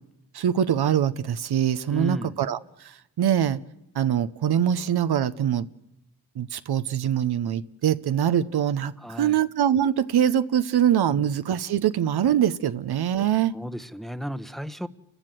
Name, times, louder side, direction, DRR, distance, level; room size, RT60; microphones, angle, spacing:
voice 1, 0.3-3.6 3.9-5.7 6.4-13.5, right 9 dB, 75° right, 0.8 m, -23 dB
voice 2, 1.9-2.4 9.0-9.4 13.5-14.9, equal, ahead, 0.9 m, -34 dB
30.0 x 14.0 x 7.6 m
cardioid pair, 55°, 38 cm